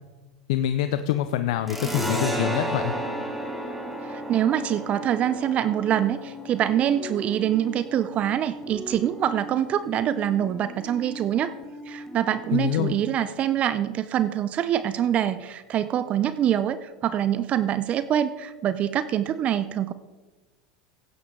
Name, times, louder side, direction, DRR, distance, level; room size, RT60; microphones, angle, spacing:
voice 1, 0.5-2.9 12.5-12.9, left 11 dB, 70° left, 10 dB, 0.6 m, -25 dB
sound 1, 1.7-8.9, right 1 dB, 5° right, 2.5 m, -33 dB
sound 2, 2.9-13.3, left 1 dB, 10° left, 1.3 m, -41 dB
voice 2, 4.0-11.5 11.9-19.9, right 10 dB, 40° right, 14 dB, 0.6 m, -25 dB
16.0 x 9.0 x 3.8 m, 1.2 s
hypercardioid pair, 90°, 3 cm